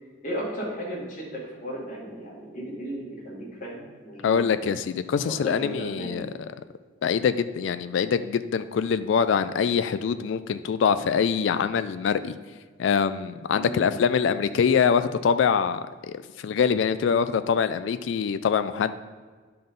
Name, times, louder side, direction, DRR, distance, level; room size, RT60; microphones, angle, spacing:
voice 1, 0.2-4.4 5.4-6.3 13.5-13.8, equal, 40° left, -4 dB, 2.2 m, -35 dB
voice 2, 4.2-6.3 7.0-12.4 12.8-18.9, left 6 dB, 70° left, 12 dB, 0.3 m, -24 dB
9.9 x 3.8 x 5.2 m, 1.5 s
head